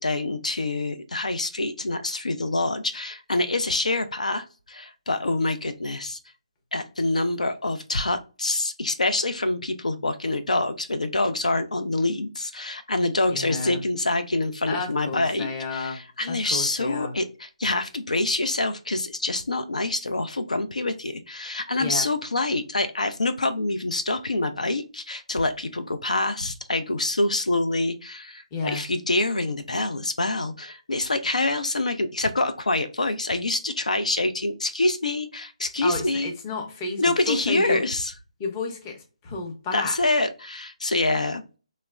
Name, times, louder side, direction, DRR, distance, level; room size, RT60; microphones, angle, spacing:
voice 1, 0.0-6.2 6.7-36.3 37.0-38.1 39.7-41.4, left 2 dB, 80° left, 9 dB, 0.4 m, -26 dB
voice 2, 13.3-13.8 14.7-16.0 16.3-17.1 21.8-22.1 28.5-28.8 35.8-37.8 38.4-40.0, left 3 dB, 20° left, 3 dB, 0.6 m, -31 dB
3.0 x 2.0 x 2.3 m, 0.34 s
figure-of-eight pair, 150°, 4 cm